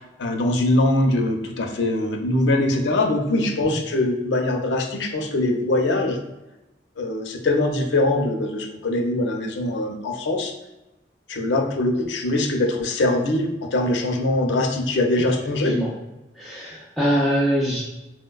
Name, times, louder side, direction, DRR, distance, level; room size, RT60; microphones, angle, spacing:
voice 1, 0.0-6.2 7.0-10.5 11.3-15.7, left 2 dB, 85° left, 3 dB, 0.5 m, -22 dB
voice 2, 16.3-17.8, equal, ahead, -8 dB, 0.4 m, -23 dB
4.0 x 2.1 x 2.2 m, 0.98 s
head